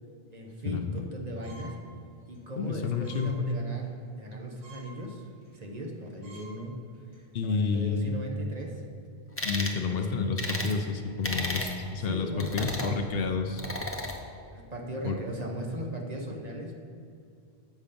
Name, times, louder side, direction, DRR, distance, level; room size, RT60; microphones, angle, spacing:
voice 1, 0.3-1.8 2.3-5.2 5.5-6.8 7.1-8.8 9.8-10.3 12.0-13.2 14.5-16.8, equal, 40° right, 0 dB, 0.9 m, -38 dB
sound 1, 1.4-1.8 2.2-2.4 3.0-3.3 3.7-3.9 4.3-4.4 4.6-4.9 5.4-5.6 5.9-6.0 6.2-6.5 6.9-7.2, right 2 dB, 85° right, 2.3 m, -50 dB
voice 2, 2.6-3.4 7.3-8.2 9.4-13.6 15.0-15.2, left 5 dB, 70° left, 6 dB, 0.8 m, -30 dB
sound 2, 9.4-9.8 10.4-10.7 11.2-11.7 12.4-12.9 13.6-14.2, left 1 dB, 15° left, 0.6 m, -33 dB
7.3 x 5.6 x 5.1 m, 2.5 s
omnidirectional pair, 1.1 m